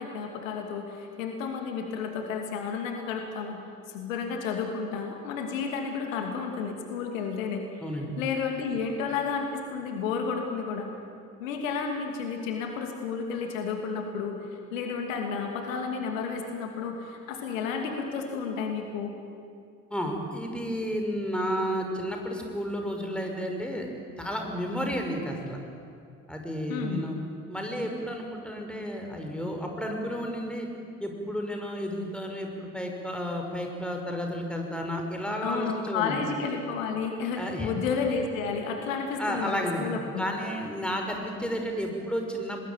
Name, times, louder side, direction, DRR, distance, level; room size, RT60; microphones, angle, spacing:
voice 1, 0.0-3.6 3.9-7.8 8.2-10.9 11.4-14.4 14.7-19.1 26.7-27.1 35.4-40.2, left 5 dB, 70° left, 3 dB, 2.7 m, -31 dB
voice 2, 7.8-8.1 19.9-23.9 24.2-25.6 26.3-27.2 27.5-30.7 31.0-36.2 37.4-37.7 39.2-39.9 40.2-42.6, equal, ahead, 2 dB, 5.7 m, -32 dB
25.5 x 20.0 x 9.3 m, 2.4 s
figure-of-eight pair, 50°, 41 cm